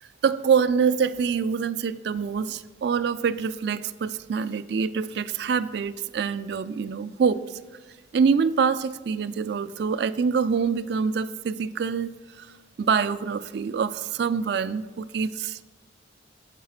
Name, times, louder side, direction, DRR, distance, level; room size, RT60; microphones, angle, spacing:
voice 1, 0.2-7.6 8.1-12.5 12.8-15.6, right 6 dB, 60° right, 14 dB, 0.3 m, -25 dB
7.5 x 4.7 x 5.7 m, 1.3 s
head